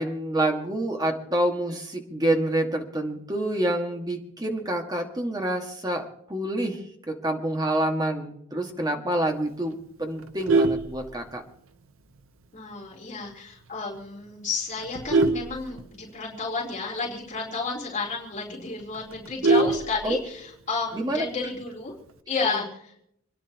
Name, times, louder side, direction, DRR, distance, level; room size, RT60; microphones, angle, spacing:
voice 1, 0.0-11.4 20.0-20.2 20.9-21.2 22.5-22.6, right 1 dB, 20° right, 2 dB, 1.9 m, -27 dB
Vehicle horn car horn honking, 10.2-11.7 12.2-12.4 12.7-12.8 13.2-13.3 13.6-14.0 14.5-16.4 16.7-16.8 17.1-17.2 17.6-17.7 18.1-18.2 18.4-20.5 21.7-22.1, right 3 dB, 90° right, 1.0 m, -24 dB
voice 2, 12.5-21.9 22.3-22.9, left 4 dB, 35° left, -4 dB, 3.9 m, -31 dB
28.5 x 10.5 x 3.0 m, 0.72 s
head